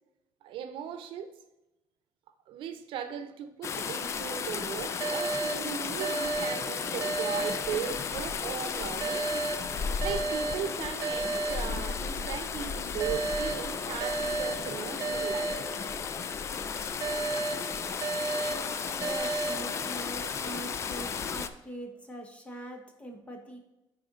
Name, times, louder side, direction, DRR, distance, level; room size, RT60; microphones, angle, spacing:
voice 1, 0.4-1.3 2.5-9.5 10.0-15.9 18.3-18.4, right 8 dB, 75° right, 9 dB, 0.7 m, -38 dB
sound 1, 3.6-21.5, left 6 dB, 35° left, 0.4 m, -34 dB
sound 2, 5.0-8.3 9.0-12.3 13.0-16.3 17.0-20.3, right 3 dB, 40° right, 0.4 m, -34 dB
voice 2, 19.0-23.6, right 1 dB, 15° left, 3 dB, 1.1 m, -42 dB
10.0 x 4.3 x 3.8 m, 0.96 s
cardioid pair, 160°, 9 cm